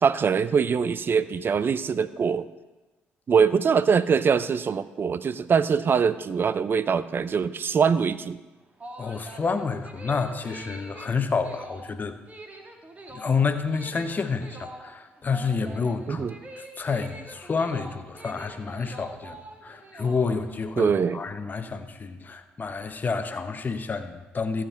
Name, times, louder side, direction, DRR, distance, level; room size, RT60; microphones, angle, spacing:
voice 1, 0.0-2.5 3.3-8.4 16.1-16.3 20.8-21.2, right 6 dB, 45° right, 15 dB, 0.6 m, -23 dB
sound 1, 8.5-20.7, right 1 dB, 30° right, 1.8 m, -44 dB
voice 2, 9.0-12.2 13.1-16.3 16.5-24.6, left 5 dB, 35° left, 8 dB, 1.1 m, -29 dB
14.0 x 7.6 x 4.5 m, 1.2 s
supercardioid pair, 60°, 5 cm